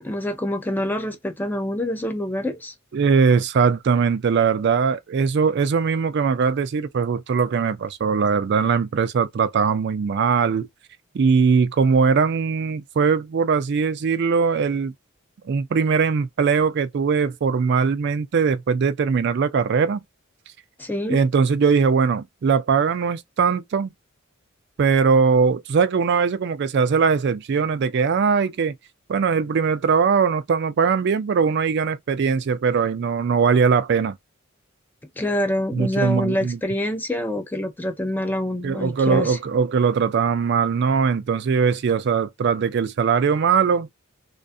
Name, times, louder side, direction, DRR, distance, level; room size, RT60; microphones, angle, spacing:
voice 1, 0.0-2.7 20.8-21.2 35.2-39.4, left 1 dB, 10° left, 0.4 m, -26 dB
voice 2, 2.9-10.7 11.1-14.9 15.5-20.0 21.1-23.9 24.8-28.8 29.1-34.2 35.7-36.6 38.6-43.9, right 5 dB, 55° right, 0.3 m, -20 dB
2.5 x 2.3 x 2.4 m
head